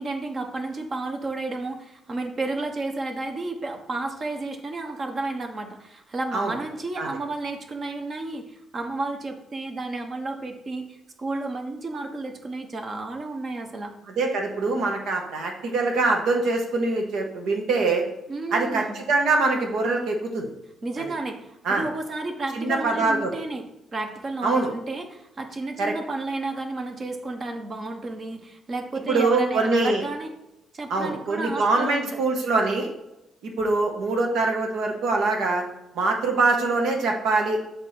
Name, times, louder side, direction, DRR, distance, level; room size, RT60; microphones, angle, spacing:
voice 1, 0.0-13.9 18.3-19.0 20.8-23.6 23.9-30.3 30.7-32.2, right 2 dB, 40° right, 4 dB, 1.0 m, -32 dB
voice 2, 14.1-18.0 18.5-20.5 21.0-21.1 21.6-21.8 22.5-23.3 24.4-24.7 25.8-25.9 29.1-30.0 30.9-32.9 33.4-35.6 35.9-37.6, right 3 dB, 80° right, 2 dB, 1.2 m, -23 dB
6.9 x 3.5 x 4.3 m, 0.90 s
cardioid pair, 90°, 0 cm